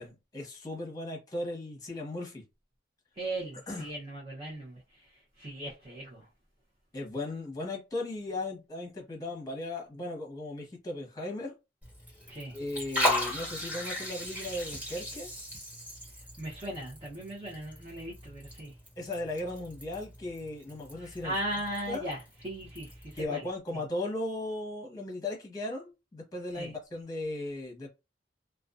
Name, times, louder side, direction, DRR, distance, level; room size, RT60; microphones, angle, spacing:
voice 1, 0.0-2.4 3.7-3.9 6.9-11.5 12.5-15.3 19.0-21.3 21.9-22.0 23.1-27.9, left 2 dB, 20° left, 0.9 m, -37 dB
voice 2, 3.2-6.3 12.3-12.6 16.1-18.8 21.0-23.5 26.5-26.7, right 1 dB, 30° right, 0.6 m, -38 dB
Liquid, 11.8-23.3, left 1 dB, 10° right, 1.2 m, -37 dB
2.4 x 2.2 x 2.4 m
head